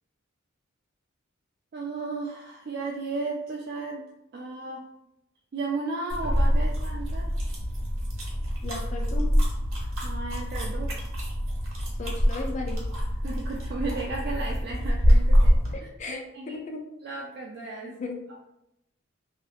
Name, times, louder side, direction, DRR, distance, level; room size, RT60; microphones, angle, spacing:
voice 1, 1.7-4.1 4.3-4.9 5.5-7.4 10.0-10.9 13.2-15.8 16.1-16.6 17.0-18.0, right 3 dB, 55° right, -1 dB, 0.3 m, -34 dB
sound 1, 6.1-15.8, equal, 85° right, 0.9 m, -25 dB
voice 2, 8.6-9.3 11.9-12.8 15.7-16.8 17.8-18.2, left 3 dB, 35° left, 2 dB, 0.4 m, -36 dB
2.7 x 2.4 x 2.3 m, 0.85 s
head